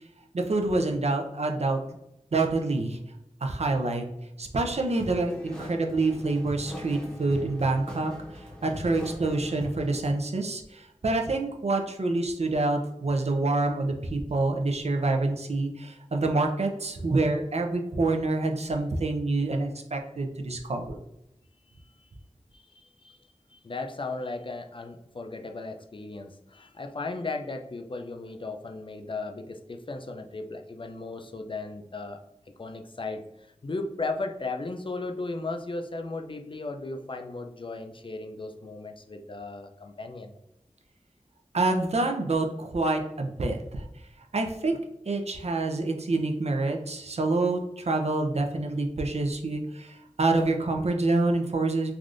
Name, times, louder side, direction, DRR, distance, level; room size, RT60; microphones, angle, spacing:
voice 1, 0.3-1.8 2.3-3.0 3.4-4.1 4.4-8.1 8.6-21.0 41.5-43.8 44.3-44.8 45.1-51.9, right 2 dB, 60° right, 3 dB, 0.4 m, -27 dB
sound 1, 5.0-10.1, equal, 5° left, 0.8 m, -41 dB
voice 2, 23.5-32.2 32.6-33.2 33.6-40.3, left 3 dB, 45° left, 5 dB, 0.4 m, -36 dB
3.3 x 2.4 x 2.5 m, 0.84 s
wide cardioid pair, 50°, 12 cm